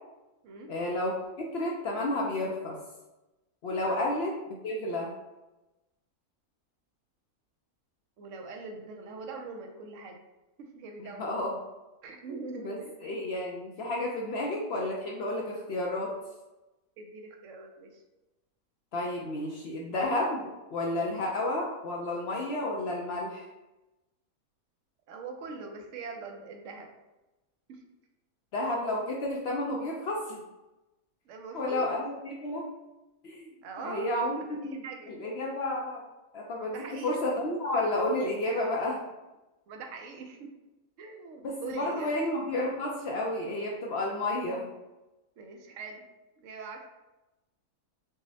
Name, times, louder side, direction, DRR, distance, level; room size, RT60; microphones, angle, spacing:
voice 1, 0.7-1.1 1.5-2.8 3.6-4.3 4.6-5.1 11.0-11.6 12.6-16.1 18.9-23.5 28.5-30.4 31.5-32.7 33.2-33.5 33.8-36.0 36.3-39.0 41.4-44.7, left 1 dB, 65° left, -1 dB, 0.6 m, -31 dB
voice 2, 8.2-10.2 10.6-11.4 12.0-12.9 17.0-18.0 25.1-26.9 27.7-27.8 31.3-31.9 33.6-34.1 34.7-35.1 36.7-37.2 38.4-38.7 39.7-40.5 41.0-42.1 45.4-46.0 46.4-46.9, right 4 dB, 70° right, 3 dB, 0.8 m, -42 dB
6.1 x 2.1 x 2.7 m, 1.0 s
omnidirectional pair, 1.5 m